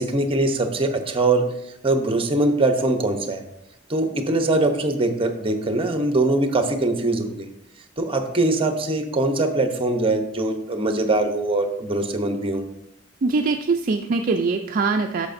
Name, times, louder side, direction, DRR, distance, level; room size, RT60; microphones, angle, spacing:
voice 1, 0.0-1.5 1.8-3.4 3.9-7.5 8.0-12.6, right 2 dB, 25° right, 7 dB, 0.8 m, -22 dB
voice 2, 13.2-15.3, right 4 dB, 40° right, 4 dB, 0.4 m, -22 dB
10.5 x 6.6 x 2.6 m, 0.82 s
head